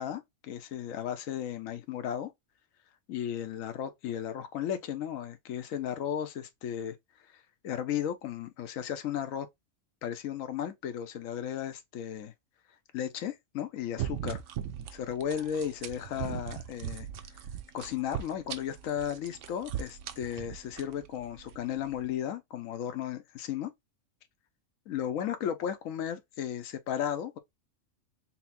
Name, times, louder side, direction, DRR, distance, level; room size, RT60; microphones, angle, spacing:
voice 1, 0.0-2.3 3.1-6.9 7.6-9.5 10.0-12.3 12.9-14.4 14.9-17.1 17.7-23.7 24.9-27.4, left 9 dB, 85° left, 1.1 m, -35 dB
sound 1, 14.0-22.1, right 10 dB, 75° right, 0.9 m, -39 dB
4.2 x 2.1 x 4.1 m
omnidirectional pair, 1.4 m